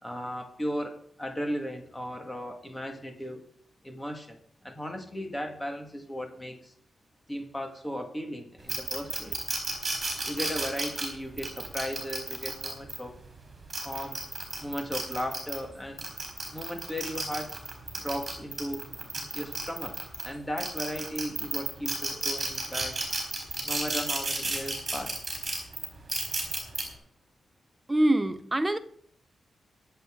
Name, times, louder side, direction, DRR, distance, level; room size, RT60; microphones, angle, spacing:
voice 1, 0.0-3.4 3.8-6.7 7.3-9.4 10.2-13.1 13.8-14.2 14.6-16.1 16.5-17.6 18.0-18.8 19.3-19.9 20.2-23.1 23.6-25.3, equal, 10° left, 1.7 m, -36 dB
sound 1, 8.7-13.0 13.5-15.6 16.0-20.3 20.6-26.8, right 3 dB, 30° right, 4.3 m, -32 dB
voice 2, 27.9-28.8, right 1 dB, 10° right, 0.6 m, -24 dB
23.0 x 8.0 x 3.7 m
wide cardioid pair, 180°, 0 cm